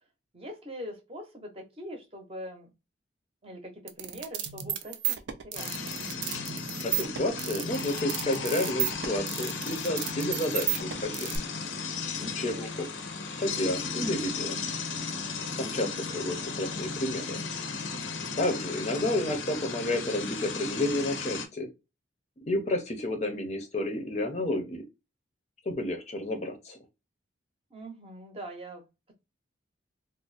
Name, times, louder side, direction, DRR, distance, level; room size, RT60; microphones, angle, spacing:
voice 1, 0.3-2.7 3.4-5.8 12.2-13.1 27.7-29.1, equal, 30° right, 0.7 m, -43 dB
sound 1, 3.9-11.4, right 12 dB, 70° right, 0.4 m, -33 dB
sound 2, 5.5-21.5, left 4 dB, 85° left, 0.6 m, -35 dB
voice 2, 6.8-11.3 12.2-12.9 13.4-14.6 15.6-17.4 18.4-21.7 22.5-24.8 25.7-26.8, left 1 dB, 35° left, 0.5 m, -31 dB
2.5 x 2.0 x 3.9 m
head